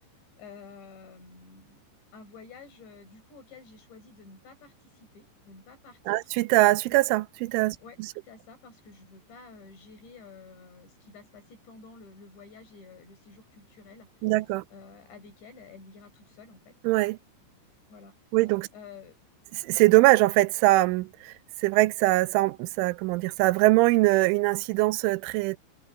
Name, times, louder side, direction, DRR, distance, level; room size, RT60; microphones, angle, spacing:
voice 1, 0.4-1.8 2.1-6.3 7.8-8.0 8.2-14.1 14.7-16.7 17.9-18.1 18.7-19.2, left 4 dB, 65° left, 9.8 m, -50 dB
voice 2, 6.1-7.8 14.2-14.6 16.8-17.2 18.3-18.7 19.6-21.3 21.6-25.6, right 20 dB, 85° right, 3.1 m, -22 dB
omnidirectional pair, 5.6 m